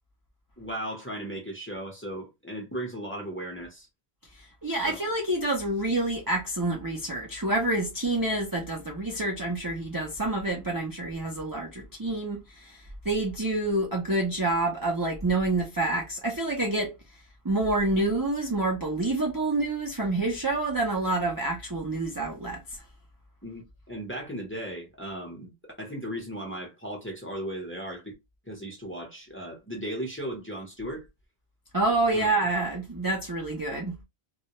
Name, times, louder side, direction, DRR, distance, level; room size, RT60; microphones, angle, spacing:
voice 1, 0.6-3.9 4.8-5.0 23.4-25.5 25.8-28.1 28.5-31.0 32.1-32.3, right 1 dB, 15° left, 0.7 m, -36 dB
voice 2, 4.6-16.9 17.4-22.6 31.7-34.0, right 2 dB, 25° right, 0.5 m, -27 dB
2.4 x 2.1 x 2.8 m
omnidirectional pair, 1.1 m